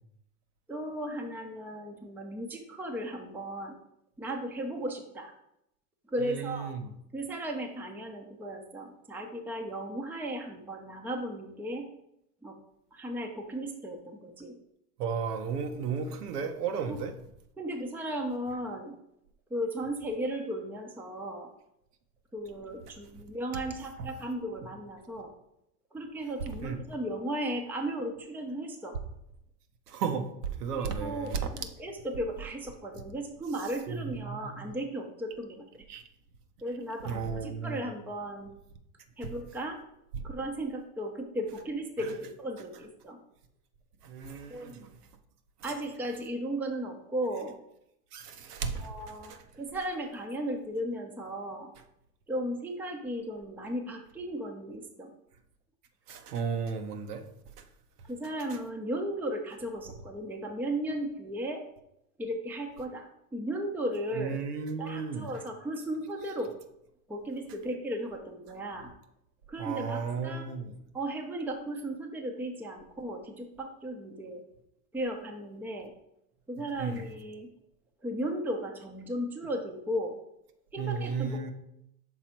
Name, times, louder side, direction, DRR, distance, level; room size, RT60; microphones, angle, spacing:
voice 1, 0.7-3.8 4.2-5.3 6.1-6.7 7.1-11.9 12.4-12.6 12.9-14.5 16.9-17.0 17.6-19.0 19.5-21.5 22.3-25.3 25.9-29.0 30.7-35.8 36.6-38.5 39.2-39.8 40.2-43.2 44.5-44.8 45.6-47.5 48.8-51.7 52.3-55.1 58.0-61.6 62.2-64.5 64.8-66.5 67.1-68.9 69.5-70.5 70.9-74.4 74.9-75.9 76.5-77.5 78.0-80.2 80.7-81.5, right 1 dB, 5° right, 2 dB, 0.6 m, -36 dB
voice 2, 6.2-6.8 15.0-17.1 26.6-26.8 29.9-30.3 30.6-31.5 33.9-34.7 35.9-36.0 37.0-37.9 40.1-40.2 42.0-42.1 44.0-44.9 45.6-45.7 48.1-48.9 49.2-49.4 56.1-57.2 58.5-58.6 64.1-65.4 69.6-70.8 76.8-77.0 80.8-81.5, right 6 dB, 85° right, 6 dB, 1.0 m, -34 dB
5.8 x 4.0 x 4.4 m, 0.79 s
hypercardioid pair, 105°, 45 cm